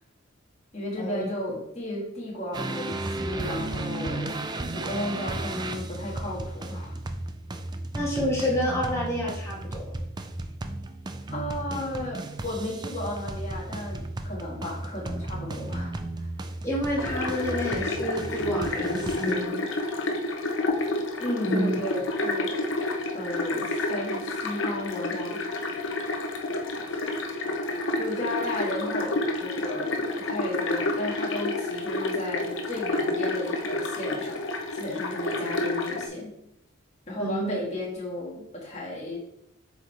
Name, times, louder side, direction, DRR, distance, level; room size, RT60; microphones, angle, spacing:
voice 1, 0.7-7.0 11.3-16.3 21.2-22.6 23.1-25.8 28.0-34.4 34.7-36.3 37.1-39.2, left 1 dB, 35° left, -4 dB, 1.8 m, -34 dB
sound 1, 2.5-19.3, right 2 dB, 20° right, 0.4 m, -34 dB
voice 2, 7.9-9.9 16.6-19.6 21.4-21.7 26.9-27.0 37.2-37.6, equal, 15° left, -4 dB, 1.7 m, -29 dB
sound 2, 17.0-36.1, left 2 dB, 65° left, 0.8 m, -29 dB
7.8 x 4.6 x 3.4 m, 0.78 s
head